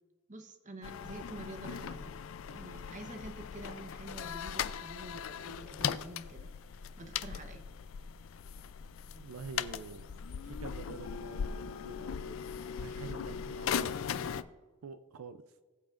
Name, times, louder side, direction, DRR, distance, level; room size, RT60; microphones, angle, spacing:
voice 1, 0.3-2.2 2.5-6.5 7.0-7.6, right 1 dB, 35° right, 5 dB, 0.9 m, -47 dB
sound 1, 0.8-14.4, left 7 dB, 65° left, 0.4 m, -39 dB
voice 2, 9.1-10.1 10.4-13.9 14.2-14.4 14.8-15.4, right 4 dB, 80° right, 11 dB, 0.5 m, -47 dB
20.0 x 7.1 x 2.5 m, 1.3 s
head